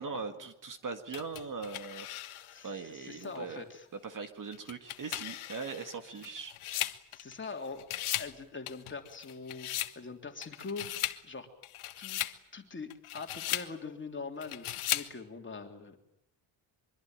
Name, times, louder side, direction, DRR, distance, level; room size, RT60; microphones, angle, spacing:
voice 1, 0.0-2.1 2.6-3.6 4.0-6.5, right 4 dB, 40° right, 8 dB, 2.0 m, -40 dB
sound 1, 1.1-2.7 3.2-3.3 4.5-7.5 7.8-8.3 8.7-10.0 10.4-11.2 11.6-12.4 12.9-13.7 14.4-15.1, left 13 dB, 80° left, 1.5 m, -37 dB
voice 2, 2.3-3.9 6.0-6.3 7.1-7.9 8.2-11.5 12.0-12.2 12.5-16.0, left 4 dB, 25° left, 4 dB, 3.3 m, -43 dB
24.0 x 24.0 x 9.1 m, 0.75 s
cardioid pair, 165°, 49 cm